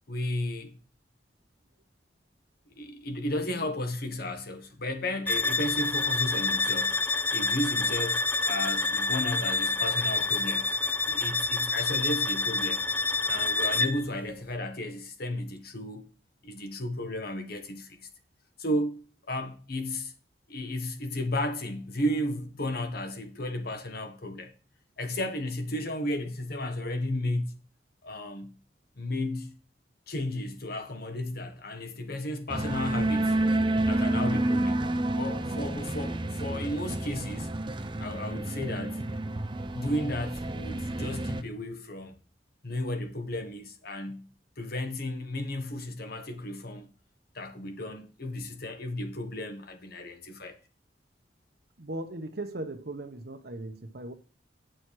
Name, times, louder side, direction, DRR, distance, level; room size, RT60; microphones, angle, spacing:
voice 1, 0.1-0.8 2.8-10.7 11.1-12.8 13.2-16.0 16.4-18.1 18.6-20.1 20.5-24.5 25.0-27.6 28.0-28.5 29.0-29.5 30.1-33.4 33.9-34.8 35.1-37.5 38.0-39.0 39.7-42.2 42.6-44.2 44.6-46.9 47.3-50.6, left 1 dB, 60° left, 1.4 m, -33 dB
sound 1, 5.3-14.1, left 3 dB, 10° left, 0.4 m, -27 dB
sound 2, 32.5-41.4, right 1 dB, 30° right, 0.7 m, -29 dB
voice 2, 51.8-54.1, right 2 dB, 65° right, 1.0 m, -38 dB
8.8 x 6.4 x 4.7 m
head